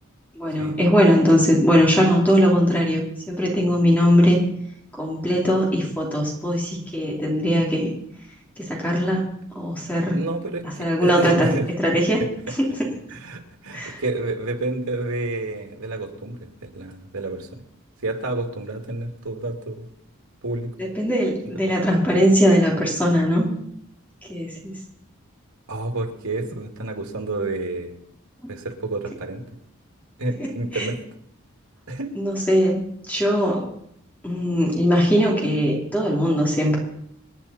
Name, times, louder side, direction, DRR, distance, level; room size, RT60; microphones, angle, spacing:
voice 1, 0.3-3.0 3.3-4.4 5.0-7.9 8.6-10.2 10.8-11.5 11.8-12.2 13.7-14.0 20.8-23.5 24.3-24.7 30.7-30.9 32.2-33.7 34.2-36.8, equal, 5° left, -2 dB, 3.0 m, -20 dB
voice 2, 10.1-11.7 13.1-17.6 18.0-19.9 20.4-20.7 21.4-21.6 22.1-22.2 25.7-28.0 28.5-29.4 30.2-31.0 31.9-32.1, right 2 dB, 85° right, 4 dB, 2.4 m, -29 dB
27.0 x 10.0 x 4.3 m, 0.73 s
head